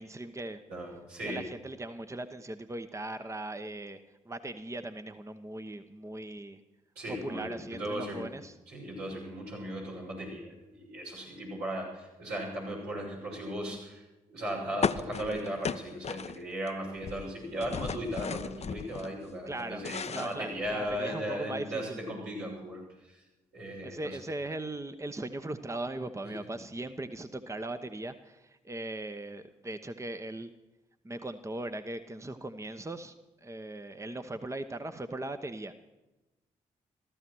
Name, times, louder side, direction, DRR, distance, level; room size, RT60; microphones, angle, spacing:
voice 1, 0.0-0.6 1.2-4.0 4.2-6.6 7.1-8.5 19.5-22.0 23.8-30.5 31.0-33.2 33.4-35.7, right 2 dB, 20° right, 9 dB, 1.0 m, -39 dB
voice 2, 0.7-1.4 6.9-8.3 8.7-23.2 23.5-24.2 26.2-26.5, equal, 80° right, -4 dB, 6.7 m, -37 dB
sound 1, 14.8-16.7 17.0-19.1 19.5-21.1, left 6 dB, 45° left, 0.7 m, -35 dB
16.0 x 14.0 x 6.2 m, 1.0 s
hypercardioid pair, 40°, 16 cm